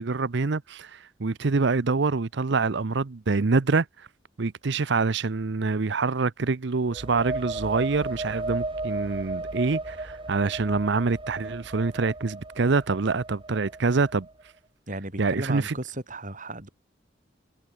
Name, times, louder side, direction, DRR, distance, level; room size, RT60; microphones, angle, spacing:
voice 1, 0.0-3.9 4.4-14.3 15.2-15.7, right 4 dB, 65° right, 0.7 m, -25 dB
sound 1, 6.8-14.4, right 2 dB, 30° right, 3.9 m, -35 dB
voice 2, 14.9-16.7, right 2 dB, 45° right, 6.3 m, -35 dB
head